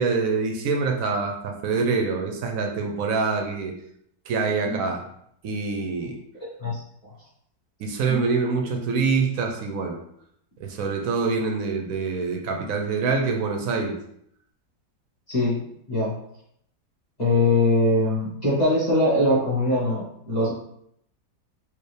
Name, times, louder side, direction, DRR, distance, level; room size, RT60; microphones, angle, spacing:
voice 1, 0.0-3.7 4.3-5.0 5.4-6.2 7.8-10.0 10.6-14.0, right 4 dB, 65° right, 3 dB, 0.9 m, -25 dB
voice 2, 15.3-15.6 15.9-16.1 17.2-20.5, left 1 dB, 25° left, -9 dB, 1.7 m, -22 dB
4.8 x 2.6 x 3.3 m, 0.71 s
omnidirectional pair, 1.9 m